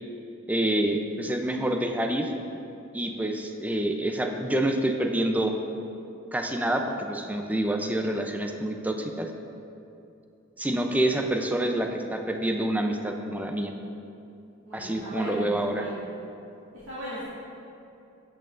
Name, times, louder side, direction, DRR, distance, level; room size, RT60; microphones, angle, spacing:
voice 1, 0.5-2.3 2.9-5.6 6.3-9.3 10.6-13.7 14.7-15.9, right 1 dB, 10° right, 4 dB, 0.6 m, -27 dB
voice 2, 14.6-16.0 16.7-17.2, equal, 75° right, -10 dB, 2.2 m, -37 dB
12.5 x 8.7 x 2.6 m, 2.8 s
head